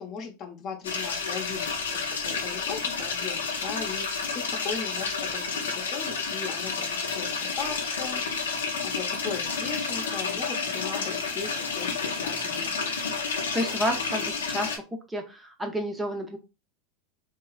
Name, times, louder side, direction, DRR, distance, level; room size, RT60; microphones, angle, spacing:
voice 1, 0.0-4.1 4.3-12.7, left 6 dB, 40° left, 4 dB, 0.7 m, -38 dB
sound 1, 0.8-14.8, left 5 dB, 80° left, 0.6 m, -30 dB
voice 2, 13.5-14.7 15.1-16.4, equal, 10° right, 3 dB, 0.5 m, -30 dB
3.0 x 2.3 x 2.3 m, 0.28 s
hypercardioid pair, 85°, 0 cm